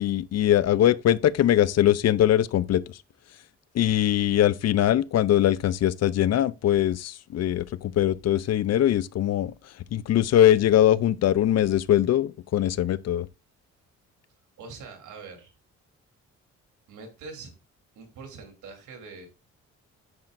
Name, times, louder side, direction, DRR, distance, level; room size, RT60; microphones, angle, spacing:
voice 1, 0.0-3.0 3.7-9.5 9.9-13.3, left 11 dB, 55° left, 0.6 m, -22 dB
voice 2, 14.6-15.5 16.9-17.5 17.9-19.3, right 4 dB, 80° right, 3.4 m, -43 dB
9.7 x 8.7 x 2.6 m
cardioid pair, 90°, 30 cm